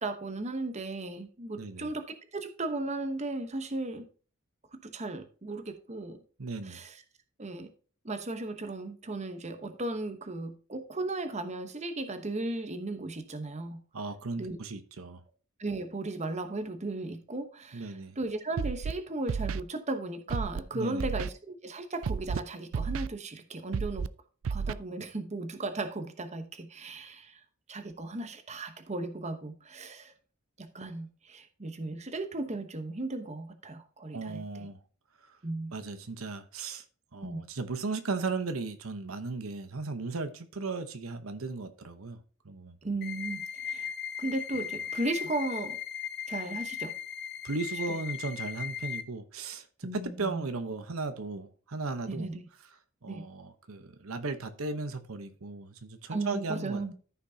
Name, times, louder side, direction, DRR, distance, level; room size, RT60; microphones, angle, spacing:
voice 1, 0.0-4.1 4.7-6.2 6.6-7.0 7.4-7.7 8.0-13.8 14.4-14.6 15.6-24.1 24.5-27.4 27.7-30.1 30.6-34.7 35.4-35.7 37.2-37.4 42.8-43.9 44.2-45.8 46.3-46.9 47.9-48.0 49.8-50.4 52.1-52.4 53.1-53.3 56.1-56.9, right 2 dB, 35° right, 1.0 m, -36 dB
voice 2, 1.6-1.9 6.4-6.8 13.9-15.2 17.7-18.2 20.7-21.1 34.1-34.8 35.3-35.4 35.7-36.8 37.1-42.2 42.4-43.0 47.4-52.3 53.0-56.9, right 3 dB, 90° right, 1.0 m, -36 dB
Scratching (performance technique), 18.6-18.9 19.3-19.6 20.3-20.6 21.0-21.3 22.0-22.4 22.7-23.1 23.7-24.1 24.4-24.7, right 5 dB, 70° right, 0.4 m, -31 dB
sound 1, 43.0-49.0, left 8 dB, 50° left, 0.9 m, -37 dB
14.0 x 6.0 x 2.8 m
head